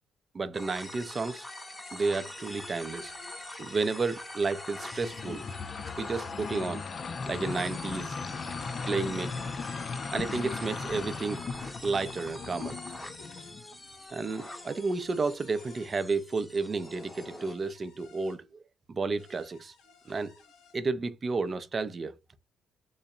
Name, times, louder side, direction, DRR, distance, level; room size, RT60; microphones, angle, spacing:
voice 1, 0.3-1.5 1.9-3.1 3.6-5.4 6.0-6.8 7.3-8.2 8.9-9.3 10.1-11.5 11.8-12.8 14.1-18.5 18.9-19.7 20.1-20.3 20.7-22.4, right 4 dB, 35° right, 0.5 m, -31 dB
sound 1, 0.5-17.5, left 1 dB, 15° left, 0.9 m, -44 dB
sound 2, 2.4-4.0 4.8-6.3 7.2-8.8 9.6-11.2 12.0-13.6 14.4-15.9 16.8-18.4 19.2-20.8, left 4 dB, 85° left, 1.3 m, -54 dB
sound 3, 4.4-13.7, left 5 dB, 45° left, 0.4 m, -38 dB
3.9 x 2.1 x 3.6 m
cardioid pair, 90°, 0 cm